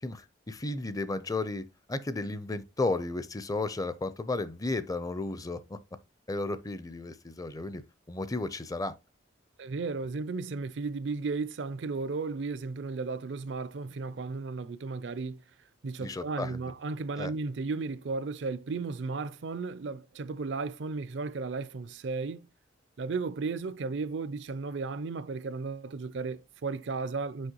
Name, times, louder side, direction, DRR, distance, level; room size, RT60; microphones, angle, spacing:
voice 1, 0.0-5.8 6.3-7.8 8.1-9.0 16.0-16.6 17.2-17.3, left 2 dB, 20° left, 0.5 m, -33 dB
voice 2, 9.6-15.4 15.8-22.5 23.0-27.5, right 4 dB, 70° right, 0.5 m, -34 dB
6.3 x 5.1 x 2.9 m
head